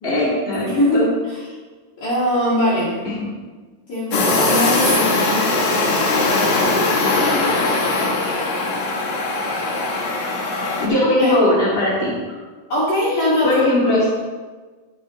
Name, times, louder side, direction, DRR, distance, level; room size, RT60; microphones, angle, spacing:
voice 1, 0.0-1.1 3.2-3.3 10.8-12.1 13.4-14.0, left 1 dB, 30° left, -8 dB, 1.0 m, -19 dB
voice 2, 0.7-1.5 2.0-3.0 3.9-7.7 8.6-8.8 11.2-11.4 12.7-13.6, equal, 50° left, -8 dB, 2.8 m, -22 dB
sound 1, 4.1-10.9, left 3 dB, 85° left, 1.6 m, -20 dB
11.0 x 8.6 x 4.0 m, 1.4 s
omnidirectional pair, 5.8 m